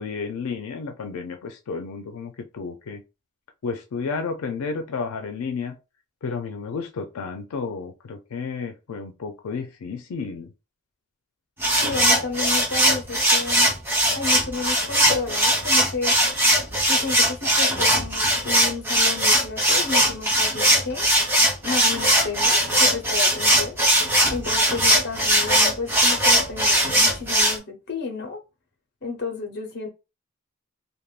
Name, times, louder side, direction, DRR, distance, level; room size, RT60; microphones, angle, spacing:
voice 1, 0.0-3.0 3.6-5.8 6.2-10.5, left 5 dB, 85° left, 0.4 m, -32 dB
sound 1, 11.6-27.5, right 1 dB, 10° right, 0.7 m, -20 dB
voice 2, 11.8-13.7 14.1-16.1 16.9-21.0 21.6-23.8 24.3-28.4 29.0-29.9, left 4 dB, 50° left, 0.7 m, -32 dB
3.3 x 2.1 x 2.4 m
head